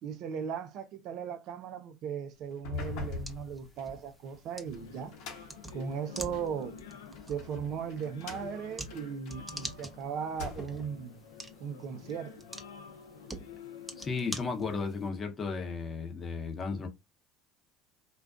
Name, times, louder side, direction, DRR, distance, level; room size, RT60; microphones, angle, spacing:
voice 1, 0.0-5.2 5.7-6.7 7.3-11.2 11.6-12.4, right 7 dB, 60° right, 0.5 m, -37 dB
sound 1, 2.5-6.6 7.1-9.9 10.2-11.0, left 5 dB, 65° left, 1.0 m, -43 dB
sound 2, 2.7-15.1, right 1 dB, 10° right, 0.7 m, -47 dB
sound 3, 4.7-14.3, left 5 dB, 85° left, 0.5 m, -49 dB
voice 2, 14.0-16.9, left 4 dB, 30° left, 0.8 m, -34 dB
2.3 x 2.2 x 2.4 m
hypercardioid pair, 75°, 0 cm